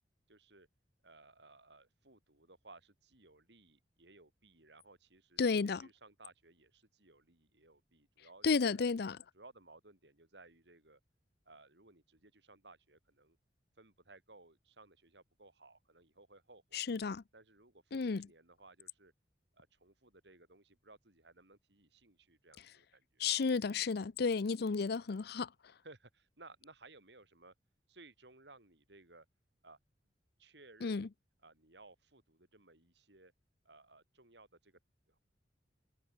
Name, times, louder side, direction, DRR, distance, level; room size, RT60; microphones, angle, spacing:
voice 1, 0.3-0.7 1.0-5.4 5.8-8.8 9.3-11.0 11.5-13.4 13.8-16.9 17.3-19.1 19.5-23.5 25.8-27.5 27.9-29.3 29.6-29.8 30.4-31.1 31.4-33.3 33.6-34.8 35.1-35.2, right 2 dB, 70° right, 5.9 m, -60 dB
voice 2, 5.4-5.9 8.4-9.2 16.7-17.2 17.9-18.3 23.2-25.5 30.8-31.1, left 5 dB, 60° left, 0.5 m, -32 dB
head